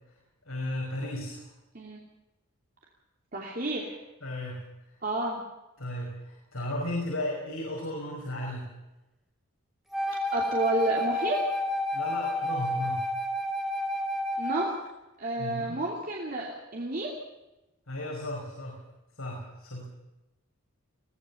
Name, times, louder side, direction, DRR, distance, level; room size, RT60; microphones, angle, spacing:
voice 1, 0.5-1.4 4.2-4.6 5.8-8.7 11.9-13.0 15.4-15.8 17.9-18.8 19.2-19.8, left 1 dB, 75° left, -3 dB, 5.4 m, -35 dB
voice 2, 3.3-4.0 5.0-5.4 10.3-11.4 14.4-14.7 15.2-17.1, right 1 dB, 40° right, -2 dB, 2.9 m, -30 dB
Wind instrument woodwind instrument, 9.9-14.8, left 1 dB, ahead, 2.4 m, -30 dB
22.5 x 17.0 x 7.1 m, 1.0 s
head